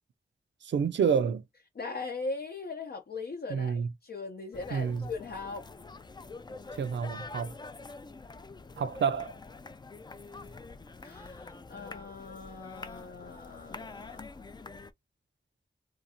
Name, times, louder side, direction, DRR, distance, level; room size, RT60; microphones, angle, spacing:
voice 1, 0.6-1.4 3.5-3.9 4.7-5.1 6.8-7.5 8.8-9.3, right 6 dB, 75° right, 0.4 m, -28 dB
voice 2, 1.8-5.6 11.0-14.3, left 3 dB, 60° left, 0.6 m, -40 dB
sound 1, 4.5-14.9, left 3 dB, 25° left, 0.3 m, -46 dB
2.5 x 2.4 x 2.7 m
cardioid pair, 50°, 19 cm